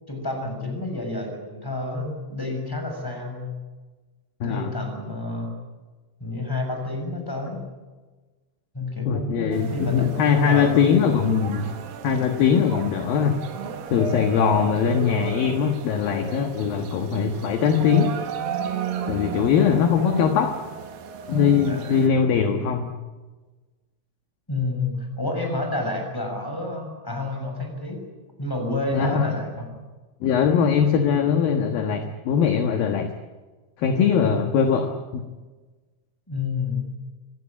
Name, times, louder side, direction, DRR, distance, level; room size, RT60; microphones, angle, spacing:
voice 1, 0.1-3.5 4.4-5.5 6.2-7.6 8.7-11.0 19.7-19.8 21.7-22.0 24.5-28.0 28.4-29.7 34.2-34.6 36.3-36.8, left 2 dB, 5° left, 3 dB, 6.1 m, -29 dB
voice 2, 4.4-4.7 9.1-11.8 12.0-13.4 13.9-18.1 19.1-20.6 21.3-22.9 28.9-29.3 30.2-33.1 33.8-35.2, left 7 dB, 65° left, 6 dB, 2.7 m, -21 dB
sound 1, 9.5-22.1, right 6 dB, 60° right, 2.9 m, -34 dB
26.0 x 18.0 x 10.0 m, 1.3 s
omnidirectional pair, 5.5 m